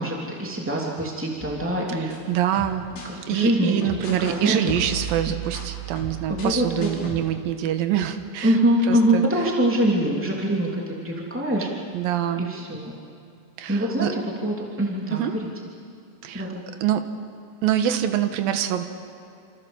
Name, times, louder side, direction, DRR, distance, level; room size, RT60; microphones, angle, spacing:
voice 1, 0.0-2.3 3.0-3.9 4.2-4.7 5.2-5.3 6.3-7.2 8.4-11.7 12.3-12.9 13.7-15.5 16.3-16.6, right 1 dB, 5° right, -3 dB, 1.2 m, -24 dB
sound 1, 1.4-3.1 3.8-4.4 4.7-7.2, right 4 dB, 55° left, 7.4 m, -36 dB
voice 2, 2.3-2.9 3.3-8.5 8.9-9.2 11.9-12.4 13.6-14.1 15.1-15.3 16.2-16.4 16.8-17.1 17.6-18.8, right 10 dB, 75° right, 7 dB, 2.1 m, -25 dB
28.5 x 27.5 x 7.2 m, 2.6 s
omnidirectional pair, 5.9 m